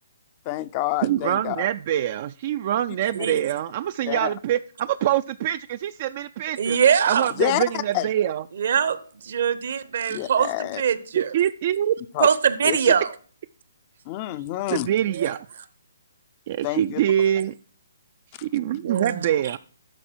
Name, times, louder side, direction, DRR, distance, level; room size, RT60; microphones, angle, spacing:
voice 1, 0.5-1.6 4.0-4.3 7.4-8.1 10.1-10.8 12.1-12.3 12.6-12.8 14.1-14.9 16.6-17.0, left 15 dB, 35° left, 0.5 m, -27 dB
voice 2, 1.0-6.8 7.1-8.4 11.2-12.0 14.7-15.5 16.5-17.6 18.4-19.6, right 11 dB, 45° right, 0.3 m, -24 dB
voice 3, 6.6-7.3 8.6-9.0 9.2-11.3 12.2-13.1 15.1-15.3 18.8-19.3, right 7 dB, 60° right, 0.9 m, -22 dB
12.0 x 4.1 x 4.5 m
hypercardioid pair, 145°, 0 cm